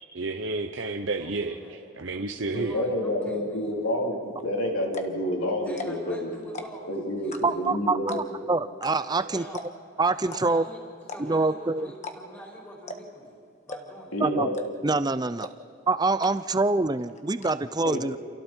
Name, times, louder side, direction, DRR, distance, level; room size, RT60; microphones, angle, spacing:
voice 1, 0.1-2.8, right 3 dB, 60° right, 5 dB, 0.9 m, -31 dB
voice 2, 1.1-1.9 2.4-3.7 5.6-7.0 7.2-7.6 9.2-9.6 10.2-10.8 11.1-13.3 13.7-14.2, equal, 10° left, -4 dB, 5.6 m, -44 dB
voice 3, 2.5-6.3 6.9-8.1 14.1-14.5 17.8-18.2, left 1 dB, 80° left, -1 dB, 3.9 m, -29 dB
sound 1, 4.4-4.5 4.8-5.2 5.7-6.1 6.4-6.9 7.3-7.7 8.1-8.4 8.8-8.9 9.2-9.3 9.5-9.9 10.3-10.4 11.0-11.5 11.9-12.4 12.9-13.2 13.7-14.1 14.5-14.9 15.4-15.5 15.8-15.9 16.2-16.6 16.9-17.5, left 2 dB, 35° left, 1.5 m, -38 dB
voice 4, 7.4-9.4 10.0-10.6 11.2-11.9 14.2-14.5 14.8-15.5 15.9-18.2, right 3 dB, 20° right, 13 dB, 0.5 m, -25 dB
29.0 x 28.5 x 4.5 m, 2.4 s
head